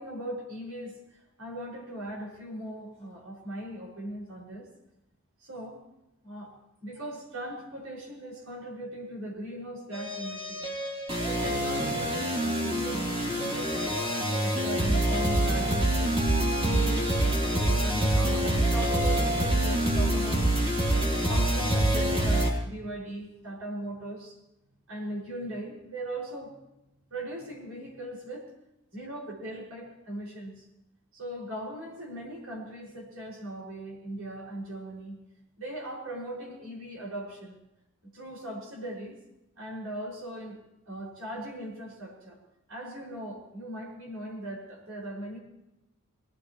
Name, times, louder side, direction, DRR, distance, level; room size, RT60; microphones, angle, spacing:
voice 1, 0.0-4.7 5.4-5.8 6.2-6.5 6.8-10.7 11.2-13.0 13.3-16.2 16.6-17.2 17.5-20.7 21.3-24.4 24.9-26.6 27.1-28.5 28.9-30.7 31.1-35.2 35.6-37.5 38.0-39.2 39.6-40.6 40.9-42.4 42.7-45.4, right 1 dB, 80° right, -3 dB, 6.4 m, -39 dB
sound 1, 9.9-22.5, right 1 dB, 25° right, 3.3 m, -26 dB
23.5 x 19.0 x 3.2 m, 0.90 s
head